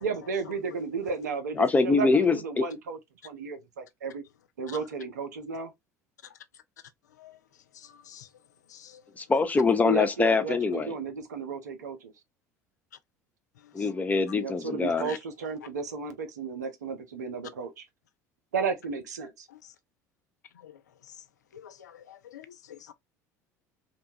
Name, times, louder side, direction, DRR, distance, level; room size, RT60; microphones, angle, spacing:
voice 1, 0.0-3.0 3.2-4.2 4.6-5.7 9.8-12.1 14.4-17.8 18.5-19.5, right 4 dB, 80° right, 0.6 m, -33 dB
voice 2, 1.6-2.6 9.2-10.9 13.7-15.1, left 4 dB, 15° left, 0.6 m, -24 dB
voice 3, 7.8-8.3 8.7-9.0 15.1-15.2 20.6-20.8 21.5-22.9, left 10 dB, 80° left, 0.4 m, -47 dB
2.8 x 2.2 x 2.7 m
hypercardioid pair, 70°, 9 cm